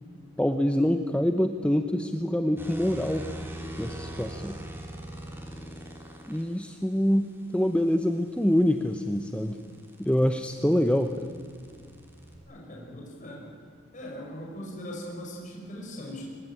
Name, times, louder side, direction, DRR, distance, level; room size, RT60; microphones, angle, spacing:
voice 1, 0.4-3.3 3.8-4.6 6.2-9.6 10.0-11.3, equal, 5° left, 7 dB, 0.9 m, -25 dB
sound 1, 2.6-6.4 8.7-12.4, right 1 dB, 10° right, 3.5 m, -41 dB
voice 2, 12.5-13.4 13.9-16.2, equal, 40° left, -2 dB, 5.6 m, -40 dB
25.0 x 20.5 x 9.0 m, 2.3 s
head